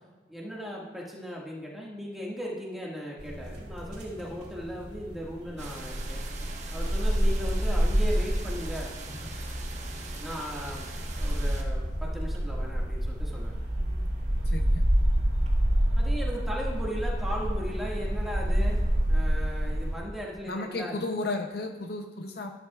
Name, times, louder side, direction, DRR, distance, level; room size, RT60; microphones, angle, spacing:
voice 1, 0.3-6.2 6.7-8.9 10.2-10.9 11.2-13.5 16.0-21.0, equal, ahead, -4 dB, 1.8 m, -37 dB
sound 1, 3.2-19.9, equal, 65° right, 2.5 m, -28 dB
sound 2, 5.6-11.6, right 4 dB, 40° right, 1.3 m, -43 dB
voice 2, 14.5-14.8 20.5-22.5, left 2 dB, 55° left, 5 dB, 0.7 m, -33 dB
13.0 x 12.0 x 2.4 m, 1.3 s
head